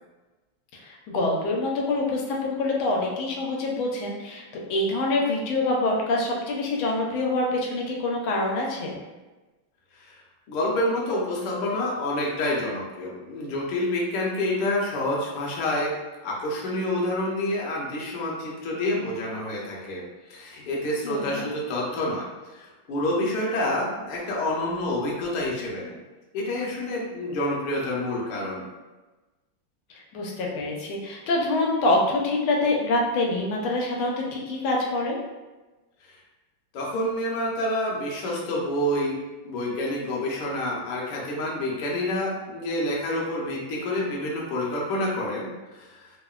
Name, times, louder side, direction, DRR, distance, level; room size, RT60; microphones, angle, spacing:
voice 1, 0.7-9.0 21.0-21.5 30.1-35.2, left 2 dB, 85° left, -1 dB, 1.4 m, -26 dB
voice 2, 10.5-15.9 16.2-20.0 20.3-26.0 26.3-28.6 36.0-36.2 36.7-39.2 39.4-46.2, left 1 dB, 70° left, -3 dB, 1.1 m, -28 dB
3.6 x 2.1 x 2.3 m, 1.2 s
omnidirectional pair, 2.2 m